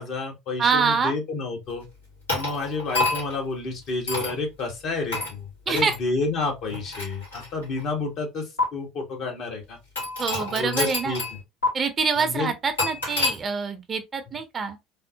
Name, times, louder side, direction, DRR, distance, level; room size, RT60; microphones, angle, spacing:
voice 1, 0.0-1.9 2.3-9.8 10.5-11.4 12.2-12.5 14.3-14.4, left 3 dB, 50° left, 1.1 m, -30 dB
voice 2, 0.6-1.1 5.7-5.9 10.2-11.2 11.7-14.8, right 5 dB, 35° right, 0.6 m, -25 dB
sound 1, 2.3-3.4 4.1-4.4 5.1-5.3 5.8-6.0 6.7-7.8 8.6-8.7 10.0-11.4 11.6-11.7 12.8-13.4, left 3 dB, 90° left, 1.8 m, -27 dB
3.6 x 2.0 x 2.7 m
hypercardioid pair, 70°, 0 cm